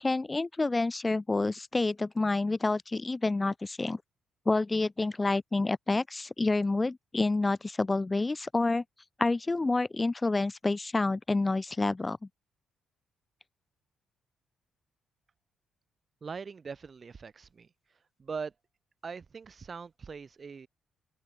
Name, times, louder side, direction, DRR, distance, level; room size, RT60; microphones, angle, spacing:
voice 1, 0.0-4.0 4.5-8.8 9.2-12.2, left 3 dB, 20° left, 0.6 m, -28 dB
voice 2, 16.2-17.7 18.2-18.5 19.0-20.7, right 5 dB, 40° right, 2.5 m, -41 dB
open air
cardioid pair, 90°, 0 cm